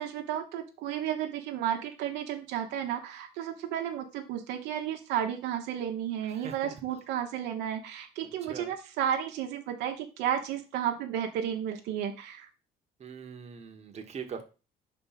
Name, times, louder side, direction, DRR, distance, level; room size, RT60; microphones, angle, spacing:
voice 1, 0.0-12.5, right 9 dB, 90° right, 4 dB, 1.0 m, -33 dB
voice 2, 6.2-6.7 8.2-8.7 13.0-14.4, right 6 dB, 40° right, 4 dB, 1.1 m, -42 dB
5.0 x 4.3 x 5.7 m, 0.32 s
cardioid pair, 110°, 17 cm